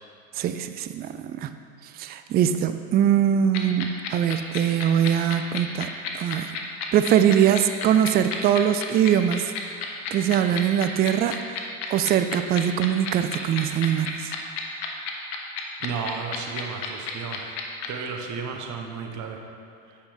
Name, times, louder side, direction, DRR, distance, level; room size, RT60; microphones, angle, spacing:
voice 1, 0.3-1.5 1.9-6.6 6.9-9.5 10.1-11.6 11.9-14.3, right 9 dB, 25° right, 10 dB, 0.3 m, -22 dB
sound 1, 3.5-17.9, left 8 dB, 60° left, 1.2 m, -31 dB
voice 2, 15.8-17.6 17.9-19.4 19.9-20.0, right 5 dB, 45° right, 3 dB, 1.2 m, -33 dB
8.7 x 5.4 x 5.0 m, 2.3 s
hypercardioid pair, 90°, 41 cm